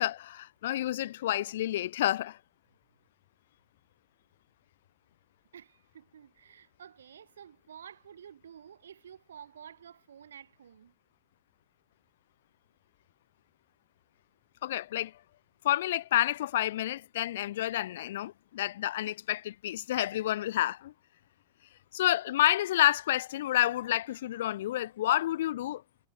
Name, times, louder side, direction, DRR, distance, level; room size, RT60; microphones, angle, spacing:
voice 1, 0.0-2.4 14.6-15.1 15.6-20.9 21.9-25.8, left 13 dB, 55° left, 0.7 m, -29 dB
voice 2, 5.5-10.9 23.8-24.3, right 8 dB, 65° right, 1.8 m, -51 dB
figure-of-eight pair, 90°, 0 cm